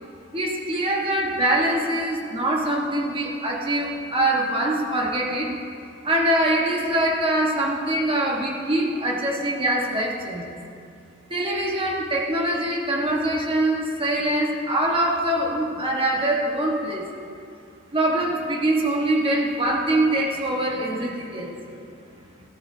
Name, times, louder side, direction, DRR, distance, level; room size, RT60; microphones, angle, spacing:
voice 1, 0.3-5.6 6.0-10.6 11.3-17.1 17.9-21.7, right 1 dB, 30° right, -1 dB, 1.5 m, -23 dB
17.0 x 14.0 x 2.8 m, 2.5 s
head